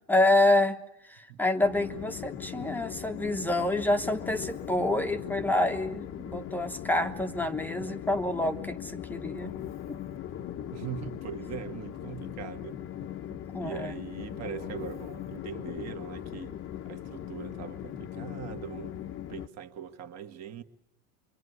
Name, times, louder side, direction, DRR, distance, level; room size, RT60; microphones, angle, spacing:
voice 1, 0.1-9.5 9.9-10.0 13.5-13.9, left 1 dB, 5° left, 1.1 m, -27 dB
Train, 1.6-19.5, left 11 dB, 30° left, 1.0 m, -39 dB
voice 2, 10.7-12.8 13.6-16.6 16.9-19.0 19.3-20.6, right 8 dB, 35° right, 2.0 m, -41 dB
25.0 x 24.5 x 9.6 m
supercardioid pair, 140°, 43 cm